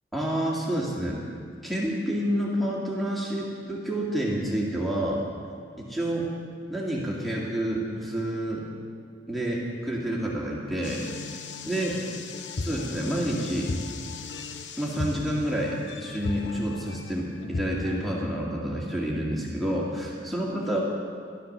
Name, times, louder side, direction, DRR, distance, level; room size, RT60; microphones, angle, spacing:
voice 1, 0.1-1.2 1.6-5.2 5.8-6.3 6.7-8.7 9.3-11.0 11.7-12.0 12.6-13.7 14.8-20.8, right 1 dB, ahead, -5 dB, 2.0 m, -29 dB
sound 1, 10.8-18.2, left 3 dB, 75° left, 0.7 m, -36 dB
14.5 x 12.0 x 6.6 m, 2.2 s
head